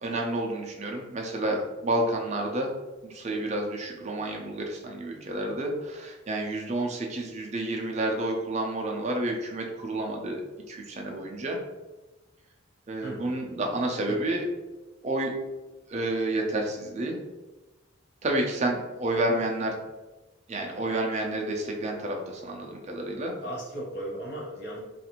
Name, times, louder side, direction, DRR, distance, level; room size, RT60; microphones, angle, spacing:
voice 1, 0.0-2.7 3.0-10.4 10.7-11.6 12.9-14.4 15.0-15.3 15.9-17.2 18.2-19.7 20.5-23.3, right 1 dB, 35° right, 1 dB, 0.5 m, -30 dB
voice 2, 13.0-13.3 14.1-14.3 19.1-19.4 23.4-24.8, right 1 dB, 55° left, -5 dB, 1.0 m, -37 dB
2.5 x 2.4 x 2.9 m, 1.1 s
head